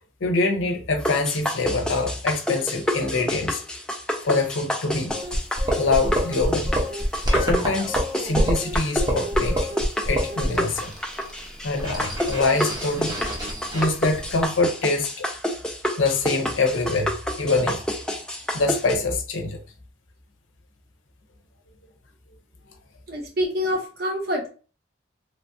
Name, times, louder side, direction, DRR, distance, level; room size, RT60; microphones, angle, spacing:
voice 1, 0.2-3.6 4.2-5.1 5.8-6.7 7.4-9.6 10.1-10.9 11.6-13.2 13.7-15.3 16.0-17.8 18.5-19.6, left 3 dB, 90° left, 0.6 m, -24 dB
sound 1, 1.1-19.0, equal, 5° left, 0.3 m, -29 dB
sound 2, 5.1-14.4, equal, 20° right, 0.7 m, -28 dB
voice 2, 23.1-24.5, equal, 50° right, 0.8 m, -26 dB
3.1 x 2.2 x 2.6 m
head